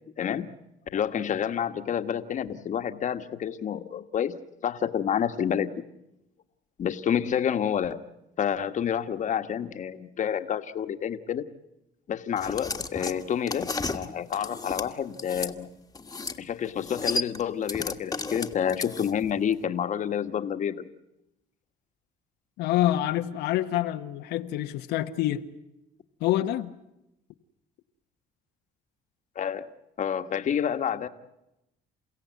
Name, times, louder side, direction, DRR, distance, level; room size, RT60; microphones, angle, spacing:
voice 1, 0.2-0.5 0.9-4.3 4.6-5.8 6.8-8.0 8.4-11.4 12.1-15.7 16.4-20.8 29.3-29.7 30.0-31.1, left 8 dB, 45° left, 9 dB, 1.4 m, -29 dB
sound 1, 12.4-15.5 15.9-16.4 16.6-19.3, left 3 dB, 20° left, 1.5 m, -33 dB
voice 2, 22.6-25.5 26.2-26.7, left 13 dB, 85° left, 6 dB, 1.1 m, -26 dB
29.0 x 16.5 x 9.4 m, 0.89 s
cardioid pair, 110°, 17 cm